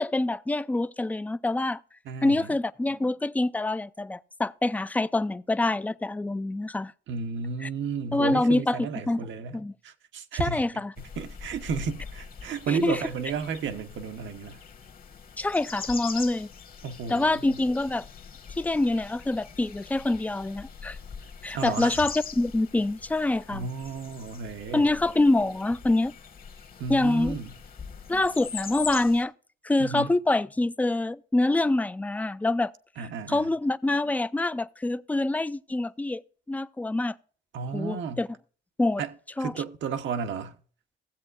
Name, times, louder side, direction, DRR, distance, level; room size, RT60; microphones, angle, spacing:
voice 1, 0.0-1.8 2.2-6.9 7.6-7.7 8.1-9.2 9.5-9.7 10.4-10.9 12.7-13.0 15.4-16.5 17.1-18.0 18.6-21.0 21.4-23.7 24.7-26.1 26.9-27.4 28.1-29.3 29.6-32.7 33.3-36.2 36.5-37.1 37.7-38.3 38.8-39.0 39.4-39.5, left 2 dB, 10° left, 0.4 m, -26 dB
voice 2, 2.0-2.5 7.1-10.7 11.0-14.6 16.8-17.6 21.5-22.1 23.5-24.9 26.8-27.5 29.8-30.1 33.0-33.5 37.5-38.2 39.0-39.1 39.4-40.6, right 6 dB, 70° right, 1.0 m, -33 dB
sound 1, 11.0-29.2, left 6 dB, 45° left, 1.3 m, -42 dB
16.5 x 7.8 x 2.5 m
cardioid pair, 90°, 20 cm